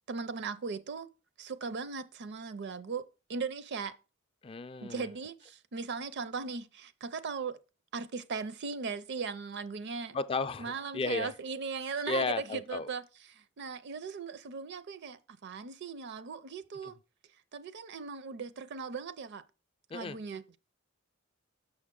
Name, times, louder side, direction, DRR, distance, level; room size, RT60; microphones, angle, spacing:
voice 1, 0.1-1.1 1.4-3.0 3.3-4.0 4.8-7.6 7.9-10.2 10.6-17.0 17.5-19.4 19.9-20.6, right 5 dB, 55° right, 0.5 m, -38 dB
voice 2, 4.4-5.1 10.1-11.3 12.1-12.9 19.9-20.2, left 4 dB, 25° left, 0.3 m, -34 dB
6.4 x 6.3 x 3.7 m
head